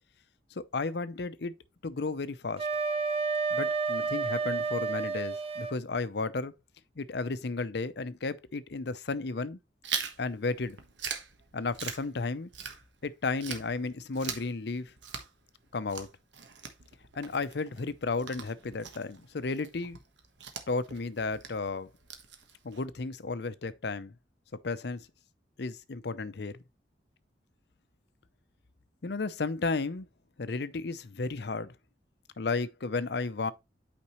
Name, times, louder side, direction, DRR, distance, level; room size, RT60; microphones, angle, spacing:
voice 1, 0.5-1.5 1.8-2.7 3.5-6.5 7.0-9.6 10.2-10.8 11.5-12.5 13.0-14.9 15.7-16.1 17.1-20.0 20.7-21.9 22.6-24.1 24.6-25.1 25.6-26.6 29.0-30.1 30.4-31.7 32.4-33.5, left 3 dB, 65° left, 0.6 m, -33 dB
Wind instrument woodwind instrument, 2.6-5.8, right 4 dB, 35° right, 0.6 m, -30 dB
Chewing mastication, 9.8-13.1 13.4-22.8, right 7 dB, 80° right, 1.3 m, -42 dB
8.6 x 5.2 x 3.1 m
head